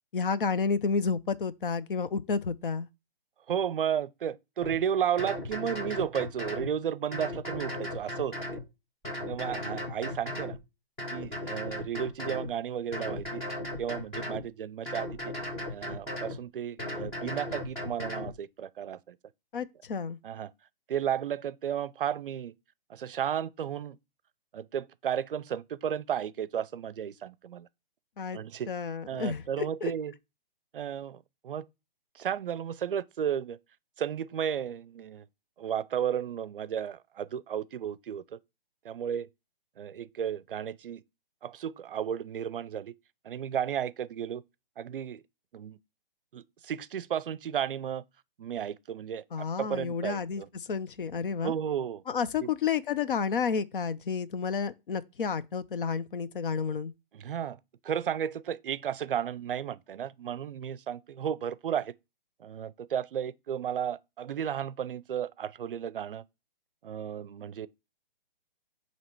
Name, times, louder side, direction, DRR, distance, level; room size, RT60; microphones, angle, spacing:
voice 1, 0.1-2.9 19.5-20.2 28.2-28.4 28.7-29.9 49.3-50.4 50.7-51.5 52.1-56.9, left 5 dB, 65° left, 0.6 m, -31 dB
voice 2, 3.5-8.4 9.3-10.6 11.1-13.4 13.8-15.3 15.7-19.2 20.2-20.5 20.9-22.5 22.9-24.0 24.5-27.7 28.3-28.7 29.1-30.1 30.7-31.7 32.2-33.6 34.0-35.3 35.6-38.2 38.8-39.3 39.8-41.0 41.4-42.9 43.2-44.4 44.8-45.2 45.5-45.8 46.3-48.0 48.4-49.2 49.6-50.5 51.4-52.0 52.4-52.5 57.1-57.6 57.8-61.9 62.4-66.2 66.8-67.7, right 9 dB, 65° right, 0.5 m, -33 dB
sound 1, 4.6-4.8 5.2-6.7 7.1-8.6 9.0-10.6 11.0-12.5 12.9-14.4 14.9-16.4 16.8-18.3, left 1 dB, 10° left, 0.8 m, -36 dB
7.3 x 2.9 x 4.4 m
hypercardioid pair, 170°, 29 cm